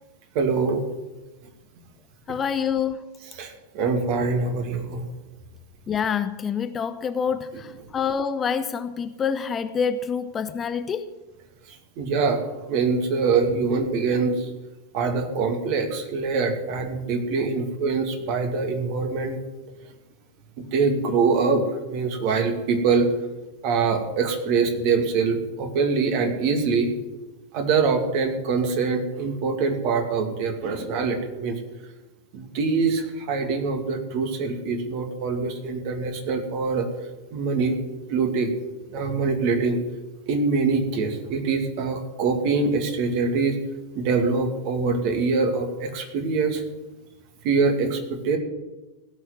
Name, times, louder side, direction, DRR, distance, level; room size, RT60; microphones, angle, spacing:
voice 1, 0.3-0.8 3.3-5.1 12.0-14.5 14.9-19.4 20.7-23.1 23.6-26.9 27.5-31.6 32.3-36.9 37.3-37.8 38.1-38.5 38.9-39.8 40.3-43.6 44.0-46.6 47.4-48.4, right 4 dB, 45° right, 5 dB, 2.5 m, -24 dB
voice 2, 2.3-3.1 5.9-11.1, left 7 dB, 20° left, 11 dB, 0.7 m, -27 dB
16.5 x 6.5 x 9.7 m, 1.1 s
figure-of-eight pair, 90°, 0 cm